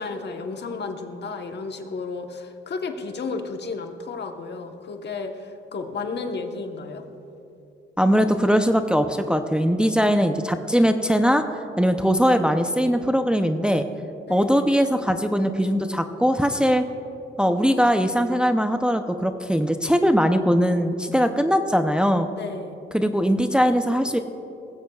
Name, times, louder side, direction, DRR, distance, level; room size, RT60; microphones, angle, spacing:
voice 1, 0.0-7.0 10.0-10.4 14.3-14.7 22.3-22.7, left 4 dB, 55° left, 5 dB, 1.2 m, -33 dB
voice 2, 8.0-11.4 11.8-13.8 14.3-16.8 17.4-22.3 22.9-24.2, equal, 5° right, 7 dB, 0.6 m, -20 dB
19.5 x 15.5 x 2.4 m, 2.9 s
cardioid pair, 75°, 21 cm